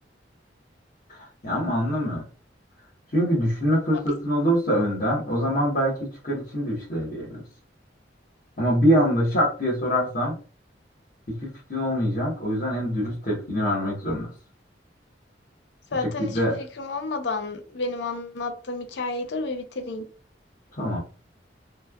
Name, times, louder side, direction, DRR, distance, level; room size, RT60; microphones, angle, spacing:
voice 1, 1.1-2.2 3.1-7.4 8.6-10.3 11.3-14.3 16.2-16.6 20.8-21.0, equal, 45° left, 0.9 m, -24 dB
voice 2, 15.9-20.0, left 3 dB, 70° left, 0.5 m, -31 dB
3.0 x 2.2 x 2.2 m
head